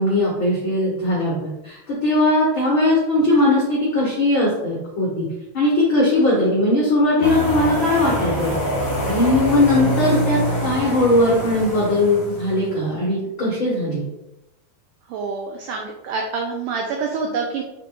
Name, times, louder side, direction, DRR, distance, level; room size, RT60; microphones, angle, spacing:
voice 1, 0.0-1.3 1.6-5.3 5.5-8.5 9.0-14.1, left 1 dB, 85° left, -5 dB, 1.0 m, -19 dB
sound 1, 7.2-12.7, equal, 30° left, 2.2 m, -25 dB
voice 2, 15.1-17.6, right 4 dB, 85° right, 1 dB, 1.8 m, -26 dB
7.3 x 3.9 x 3.8 m, 0.92 s
omnidirectional pair, 4.6 m